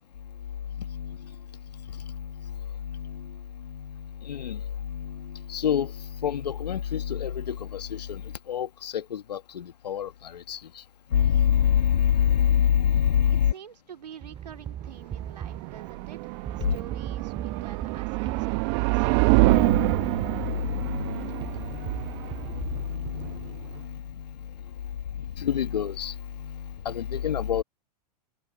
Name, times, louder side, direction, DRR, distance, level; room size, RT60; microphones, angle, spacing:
voice 1, 0.8-1.3 1.9-2.6 2.8-3.4 3.6-10.6 11.1-13.5 16.6-16.8 19.4-22.3 22.9-24.3 25.4-27.6, left 9 dB, 85° left, 1.7 m, -27 dB
voice 2, 13.3-19.1, right 8 dB, 85° right, 3.5 m, -47 dB
sound 1, 14.2-23.8, right 9 dB, 25° right, 2.6 m, -39 dB
sound 2, 14.8-23.8, right 28 dB, 50° right, 0.9 m, -27 dB
hypercardioid pair, 110°, 21 cm